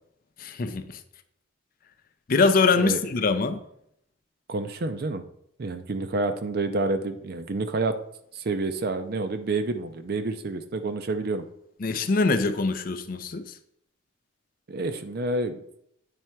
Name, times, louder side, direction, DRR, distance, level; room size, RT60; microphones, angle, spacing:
voice 1, 0.4-1.0 2.3-3.6 11.8-13.6, left 4 dB, 45° left, 10 dB, 0.5 m, -23 dB
voice 2, 4.5-5.2 5.6-7.9 8.3-11.4 14.7-15.6, right 3 dB, 50° right, 8 dB, 0.5 m, -28 dB
8.8 x 3.3 x 4.4 m, 0.74 s
head